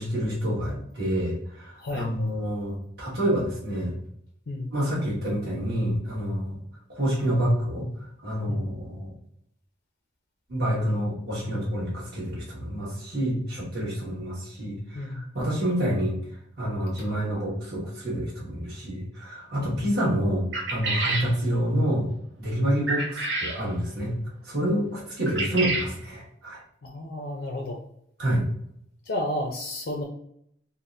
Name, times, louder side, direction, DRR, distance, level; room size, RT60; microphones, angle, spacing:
voice 1, 0.0-4.0 4.7-6.6 6.9-7.9 8.2-9.1 10.5-16.2 16.6-22.1 22.4-24.1 24.4-26.6 28.2-28.4, equal, 55° right, -5 dB, 1.5 m, -28 dB
voice 2, 1.8-2.1 4.5-4.7 8.5-8.6 14.9-15.2 17.3-17.4 19.6-19.9 26.8-27.8 29.0-30.0, left 1 dB, 70° left, 0 dB, 0.5 m, -32 dB
sound 1, 20.5-21.3 22.9-23.6 25.3-25.9, right 2 dB, 75° right, 0.9 m, -28 dB
4.0 x 2.1 x 2.6 m, 0.71 s
head